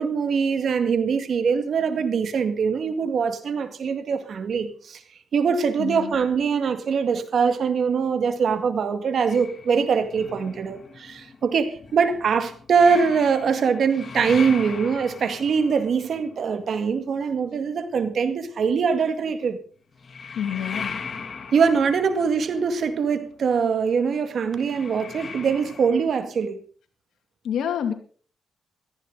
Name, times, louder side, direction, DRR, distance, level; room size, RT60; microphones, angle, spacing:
voice 1, 0.0-5.0 5.3-19.6 21.5-26.6, right 6 dB, 65° right, 2.0 m, -23 dB
voice 2, 5.8-6.2 20.3-20.9 27.4-27.9, left 8 dB, 85° left, 2.6 m, -27 dB
sound 1, 9.3-17.8 19.9-26.1, left 5 dB, 55° left, 2.7 m, -39 dB
17.0 x 14.5 x 4.0 m
cardioid pair, 70°, 0 cm